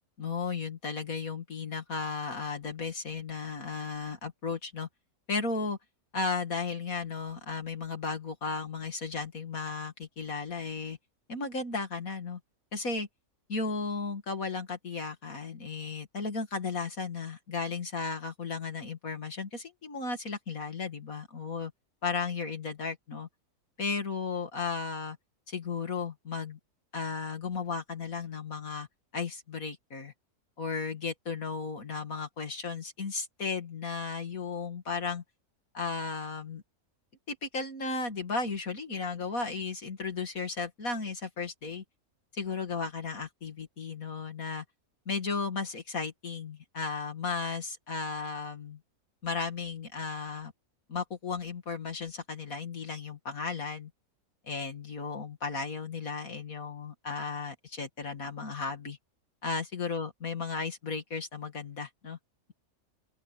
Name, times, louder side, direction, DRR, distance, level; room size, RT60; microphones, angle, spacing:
voice 1, 0.2-4.9 5.3-5.8 6.1-11.0 11.3-12.4 12.7-13.1 13.5-21.7 22.0-23.3 23.8-25.2 25.5-26.6 26.9-28.9 29.1-30.1 30.6-35.2 35.7-36.6 37.3-41.8 42.3-44.6 45.1-48.8 49.2-50.5 50.9-53.9 54.4-59.0 59.4-62.2, left 4 dB, 70° left, 2.7 m, -35 dB
open air
omnidirectional pair, 1.6 m